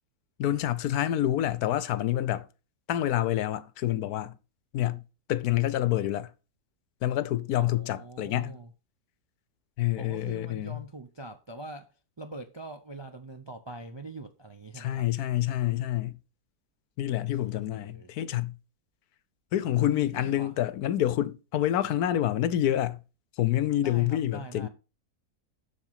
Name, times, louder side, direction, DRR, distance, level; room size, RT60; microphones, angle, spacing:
voice 1, 0.4-2.5 2.9-4.4 4.7-5.0 5.3-6.3 7.0-8.5 9.8-10.8 14.8-16.2 17.0-18.6 19.5-23.0 23.4-24.7, left 12 dB, 80° left, 1.2 m, -27 dB
voice 2, 7.6-8.7 10.0-15.1 17.3-18.1 19.8-20.5 23.8-24.7, right 2 dB, 40° right, 0.4 m, -44 dB
7.6 x 6.4 x 5.6 m
omnidirectional pair, 1.6 m